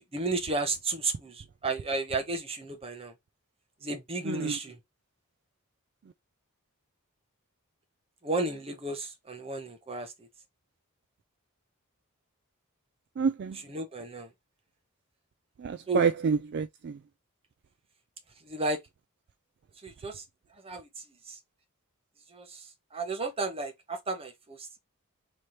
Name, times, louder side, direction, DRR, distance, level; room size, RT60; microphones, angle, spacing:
voice 1, 0.0-3.1 3.8-4.8 8.2-10.1 13.5-14.3 15.9-16.1 18.5-18.8 19.8-20.2 20.6-20.8 22.3-22.6 22.9-24.8, right 2 dB, 25° right, 0.9 m, -33 dB
voice 2, 4.2-4.6 13.2-13.6 15.6-17.0, right 6 dB, 50° right, 0.3 m, -28 dB
3.2 x 3.1 x 3.9 m
head